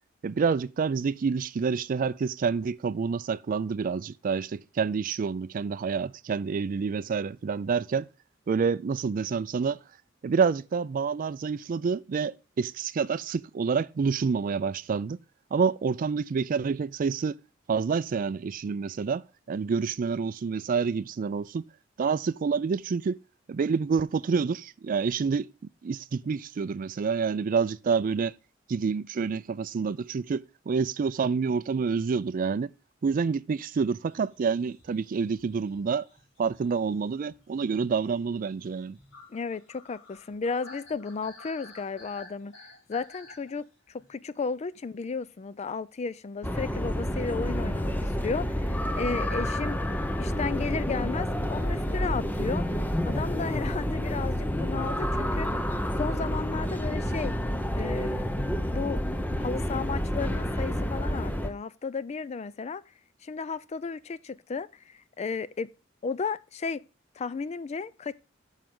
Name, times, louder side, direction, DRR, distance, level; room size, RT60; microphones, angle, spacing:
voice 1, 0.2-8.1 8.5-9.8 10.2-15.2 15.5-17.4 17.7-19.2 19.5-21.6 22.0-23.2 23.5-25.5 25.8-28.3 28.7-32.7 33.0-36.0 36.4-39.0, right 5 dB, 45° right, 0.3 m, -28 dB
sound 1, 34.1-44.1, left 2 dB, 70° left, 4.0 m, -52 dB
voice 2, 39.3-42.5 42.9-49.8 50.2-52.6 53.1-55.5 56.0-57.3 57.8-59.0 59.4-62.8 63.2-65.7 66.0-66.8 67.2-68.1, left 5 dB, 35° left, 0.4 m, -34 dB
sound 2, 46.4-61.5, equal, 10° left, 0.7 m, -29 dB
9.3 x 6.4 x 3.7 m
head